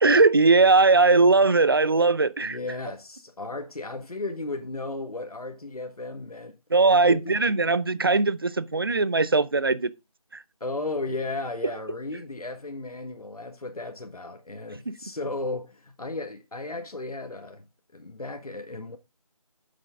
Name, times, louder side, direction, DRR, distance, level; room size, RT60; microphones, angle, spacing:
voice 1, 0.0-2.6 6.7-9.9 10.3-10.4 14.9-15.0, right 3 dB, 40° right, 0.6 m, -20 dB
voice 2, 2.4-6.6 6.8-7.3 10.6-17.7 17.9-19.0, left 2 dB, 80° left, 1.6 m, -35 dB
8.8 x 7.7 x 3.6 m
figure-of-eight pair, 170°, 19 cm